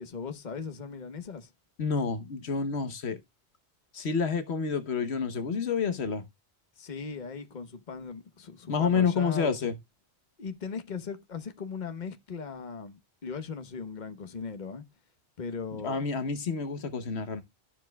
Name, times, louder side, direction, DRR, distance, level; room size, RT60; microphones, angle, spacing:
voice 1, 0.0-1.5 6.8-9.7 10.4-14.8 15.4-16.0, left 5 dB, 45° left, 1.2 m, -38 dB
voice 2, 1.8-3.2 3.9-6.2 8.7-9.7 15.8-17.4, left 5 dB, 75° left, 1.3 m, -29 dB
12.5 x 7.3 x 2.2 m
omnidirectional pair, 1.1 m